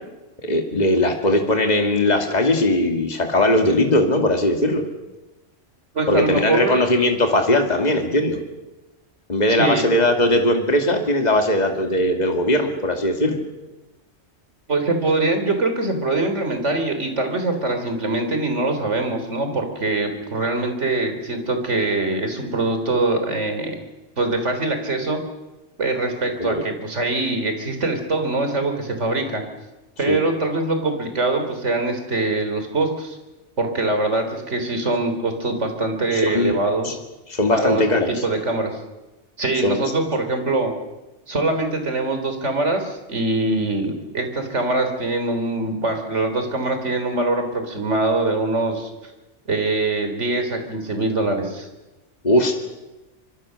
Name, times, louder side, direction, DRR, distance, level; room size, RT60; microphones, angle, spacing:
voice 1, 0.4-4.8 6.1-8.4 9.3-13.4 26.4-26.6 30.1-30.2 36.1-36.6 36.8-36.9 37.3-38.2 39.6-39.8 52.2-52.6, left 1 dB, 35° left, 4 dB, 2.4 m, -19 dB
voice 2, 5.9-6.8 9.6-9.9 14.7-23.8 24.2-25.2 25.8-29.4 30.0-33.2 33.6-37.0 37.5-38.7 39.4-40.7 41.3-48.9 49.5-51.7, right 2 dB, 70° right, 6 dB, 3.9 m, -23 dB
25.5 x 23.5 x 6.5 m, 1.1 s
omnidirectional pair, 1.3 m